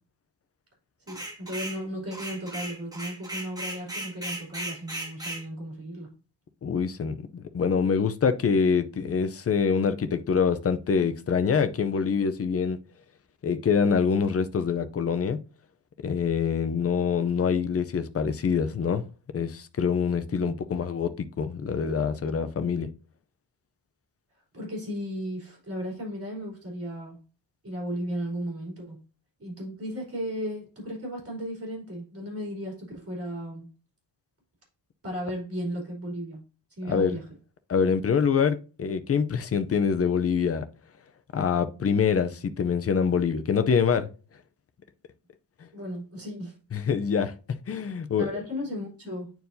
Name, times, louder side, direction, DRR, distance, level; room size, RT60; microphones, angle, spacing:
sound 1, 1.1-1.8 2.1-5.4, right 1 dB, 10° right, 1.7 m, -36 dB
voice 1, 1.1-6.1 20.4-20.6 24.5-27.2 27.6-29.0 29.4-33.7 35.0-36.4 36.8-37.3 45.7-46.5 48.2-49.3, equal, 35° right, 3.5 m, -35 dB
voice 2, 6.6-12.8 13.4-15.4 16.0-19.1 19.3-22.9 36.9-37.2 37.7-40.6 41.3-44.1 46.7-47.3 47.7-48.3, left 6 dB, 35° left, 0.6 m, -25 dB
9.2 x 4.6 x 2.7 m
wide cardioid pair, 155°, 43 cm